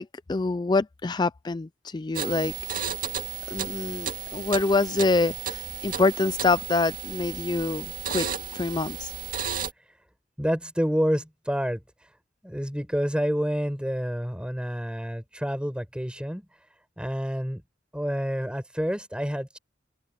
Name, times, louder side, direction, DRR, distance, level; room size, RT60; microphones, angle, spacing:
voice 1, 0.0-2.8 3.5-8.3 8.5-9.1, left 3 dB, 25° left, 0.4 m, -26 dB
sound 1, 2.1-9.7, right 8 dB, 45° right, 2.0 m, -33 dB
voice 2, 10.4-12.2 12.4-16.7 17.0-17.6 17.9-19.6, equal, 5° right, 7.3 m, -29 dB
open air
head